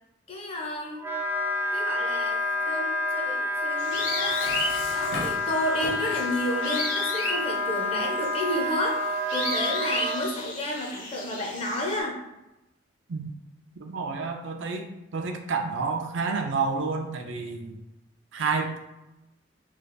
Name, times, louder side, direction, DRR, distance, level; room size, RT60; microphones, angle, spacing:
voice 1, 0.3-1.0 1.7-4.4 4.9-12.2, left 1 dB, 30° left, 0 dB, 0.6 m, -31 dB
Wind instrument woodwind instrument, 1.0-10.2, left 2 dB, 10° right, 0.3 m, -29 dB
sound 1, 3.8-12.0, left 2 dB, 90° left, 1.1 m, -34 dB
Dishes pots and pans, 3.9-6.4, left 2 dB, 65° left, 0.7 m, -37 dB
voice 2, 13.8-17.8 18.3-18.8, right 4 dB, 70° right, 4 dB, 0.5 m, -29 dB
3.2 x 2.4 x 3.9 m, 0.94 s
head